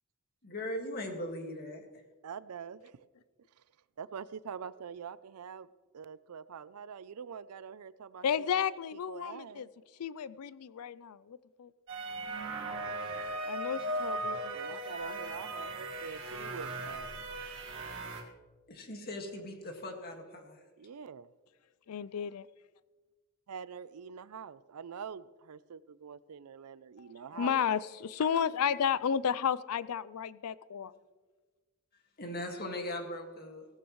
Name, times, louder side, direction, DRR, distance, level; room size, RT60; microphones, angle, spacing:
voice 1, 0.4-1.9 18.7-20.6 27.3-27.6 28.2-28.4 28.7-28.8 30.8-31.0 32.2-33.7, left 1 dB, 45° left, 3 dB, 1.9 m, -40 dB
voice 2, 2.2-3.1 3.6-3.7 4.0-5.7 5.9-9.7 14.5-17.1 20.8-21.3 23.5-27.6, right 7 dB, 85° right, 17 dB, 0.5 m, -45 dB
voice 3, 8.2-9.7 10.0-11.7 13.5-14.6 21.9-22.5 27.4-30.9, left 7 dB, 80° left, 18 dB, 0.4 m, -32 dB
sound 1, 11.9-18.2, right 2 dB, 60° right, 1.8 m, -38 dB
16.5 x 15.0 x 3.1 m, 1.3 s
head